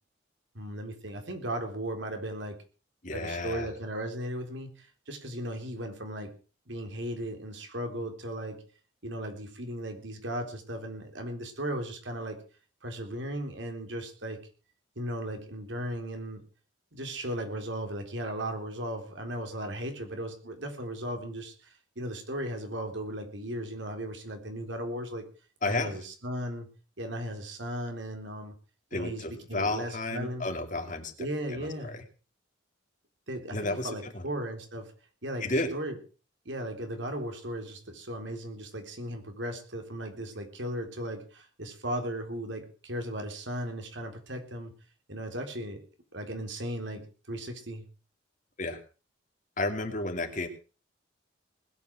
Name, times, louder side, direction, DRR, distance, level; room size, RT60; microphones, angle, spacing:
voice 1, 0.5-2.6 3.1-6.3 6.7-8.6 9.0-12.4 12.8-14.4 15.0-16.4 16.9-25.2 25.6-26.7 27.0-28.5 28.9-30.5 31.2-32.0 33.3-34.9 35.2-36.0 36.5-44.7 45.1-45.8 46.1-47.8, right 1 dB, 70° right, 5 dB, 3.9 m, -36 dB
voice 2, 3.0-3.7 25.6-25.9 28.9-31.1 33.5-33.9 35.4-35.7 48.6-48.8 49.6-50.5, left 2 dB, 40° left, 6 dB, 2.5 m, -31 dB
20.0 x 9.0 x 6.3 m, 0.36 s
head